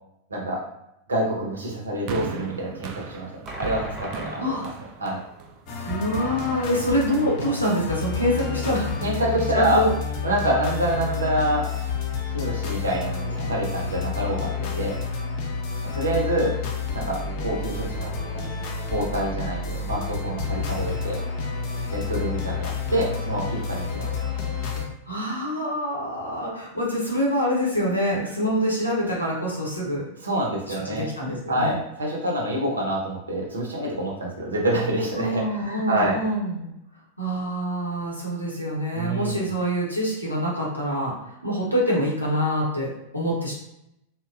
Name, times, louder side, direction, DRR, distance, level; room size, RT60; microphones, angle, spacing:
voice 1, 0.3-0.6 1.1-3.3 3.6-4.6 5.0-5.2 9.0-9.8 10.2-11.7 12.2-14.9 15.8-16.5 16.9-18.4 18.9-21.2 21.9-24.1 30.2-31.1 31.5-36.2 38.9-39.4, right 1 dB, 75° right, -2 dB, 0.7 m, -26 dB
sound 1, 2.1-6.4 7.2-7.3, right 6 dB, 40° right, 0.3 m, -38 dB
sound 2, 3.5-5.2, equal, 10° right, 0.7 m, -39 dB
sound 3, 5.7-24.8, left 5 dB, 45° left, 0.5 m, -30 dB
voice 2, 5.9-8.9 9.5-9.9 25.1-30.1 30.7-31.8 35.2-36.7 37.2-43.5, equal, 90° left, -4 dB, 0.8 m, -25 dB
2.8 x 2.2 x 2.3 m, 0.82 s
figure-of-eight pair, 90°, 0 cm